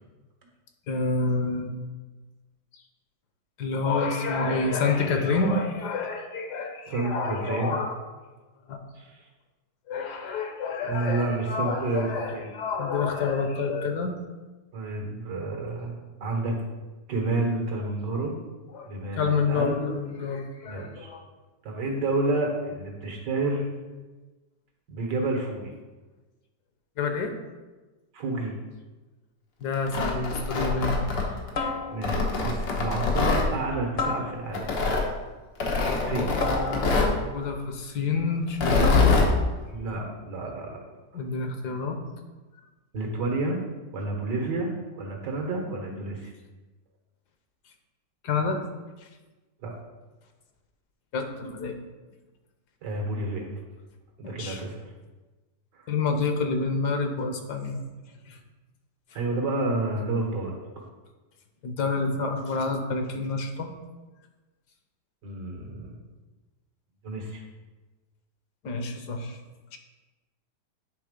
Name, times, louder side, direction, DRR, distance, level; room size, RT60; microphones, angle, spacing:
voice 1, 0.9-1.8 3.6-7.9 8.7-8.8 9.9-14.1 18.7-18.9 19.2-21.2 27.0-27.3 29.6-31.0 36.1-39.1 41.1-42.0 48.2-48.6 51.1-51.8 54.2-54.6 55.9-57.8 58.3-58.4 61.6-63.7 68.6-69.4 69.7-69.8, left 4 dB, 70° left, 5 dB, 1.5 m, -28 dB
voice 2, 6.9-7.7 9.0-9.2 10.8-12.5 14.7-16.6 17.1-18.4 18.9-19.8 20.6-21.1 21.6-23.7 24.9-25.7 28.1-28.6 31.9-34.7 36.0-36.4 39.7-40.8 41.1-41.2 42.9-43.6 43.9-46.3 49.6-49.7 52.8-53.5 54.2-54.9 59.2-60.5 65.2-66.0 67.0-67.4, right 2 dB, 80° right, 1 dB, 2.0 m, -30 dB
Tearing, 29.7-31.5 32.0-33.5 34.5-35.1 35.6-37.2 38.5-39.3, left 3 dB, 90° left, 1.8 m, -24 dB
sound 1, 29.7-30.1 31.5-32.3 34.0-34.8 36.4-37.3 38.8-39.4, left 3 dB, 45° left, 0.8 m, -32 dB
9.6 x 3.6 x 5.1 m, 1.2 s
omnidirectional pair, 1.8 m